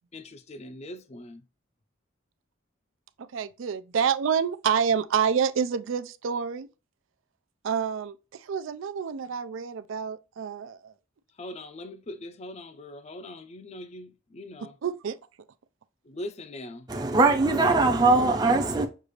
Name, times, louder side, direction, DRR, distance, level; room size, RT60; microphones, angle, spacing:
voice 1, 0.1-1.4 11.4-14.8 16.0-16.9, left 1 dB, 35° left, 0.5 m, -41 dB
voice 2, 3.2-6.7 7.6-10.9 14.8-15.2, right 7 dB, 75° right, 0.4 m, -28 dB
voice 3, 16.9-18.9, right 3 dB, 20° right, 0.6 m, -21 dB
6.5 x 2.4 x 3.1 m
head